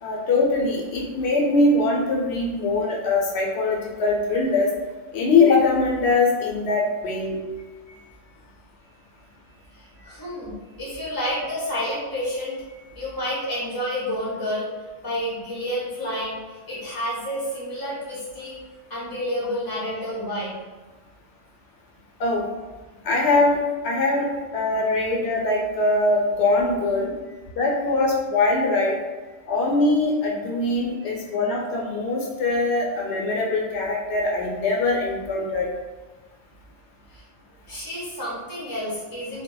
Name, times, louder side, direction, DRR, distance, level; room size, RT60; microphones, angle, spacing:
voice 1, 0.0-4.7 5.1-7.4 22.2-22.4 23.0-24.3 24.5-27.1 27.6-29.0 29.5-35.7, left 3 dB, 80° left, -1 dB, 0.8 m, -22 dB
voice 2, 9.7-14.7 15.0-18.6 18.9-20.5 27.3-27.4 30.9-31.4 37.1-37.2 37.7-39.4, equal, 25° left, -8 dB, 0.5 m, -30 dB
2.1 x 2.0 x 3.7 m, 1.3 s
omnidirectional pair, 1.1 m